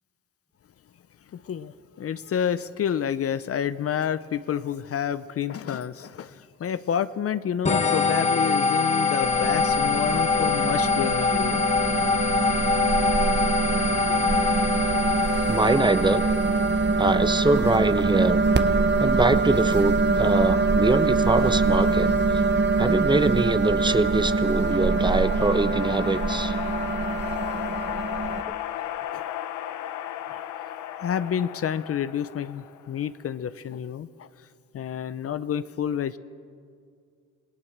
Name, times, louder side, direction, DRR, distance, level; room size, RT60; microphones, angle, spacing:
voice 1, 1.3-11.6 14.1-14.3 18.9-19.0 21.4-21.5 29.1-29.2 31.0-34.3 34.7-36.2, left 8 dB, 50° left, 14 dB, 0.7 m, -29 dB
sound 1, 7.6-17.0, left 5 dB, 20° left, 1.5 m, -24 dB
sound 2, 9.2-28.4, right 3 dB, 35° right, 1.2 m, -24 dB
voice 2, 15.5-16.3 17.0-18.4 19.0-22.1 22.8-26.5, right 2 dB, 15° right, 11 dB, 1.0 m, -23 dB
sound 3, 23.5-33.1, left 12 dB, 85° left, 1.0 m, -35 dB
27.5 x 18.0 x 7.3 m, 2.3 s
cardioid pair, 90°, 30 cm